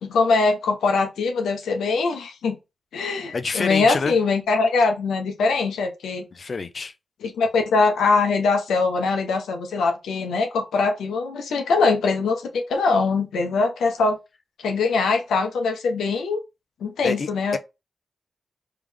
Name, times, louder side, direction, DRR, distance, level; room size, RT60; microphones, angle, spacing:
voice 1, 0.0-2.6 2.9-6.3 7.2-14.2 14.6-16.4 16.8-17.6, left 4 dB, 85° left, 0.9 m, -22 dB
voice 2, 3.3-4.1 6.4-6.9 17.0-17.6, left 4 dB, 55° left, 0.5 m, -27 dB
3.5 x 3.4 x 3.4 m
supercardioid pair, 45°, 0 cm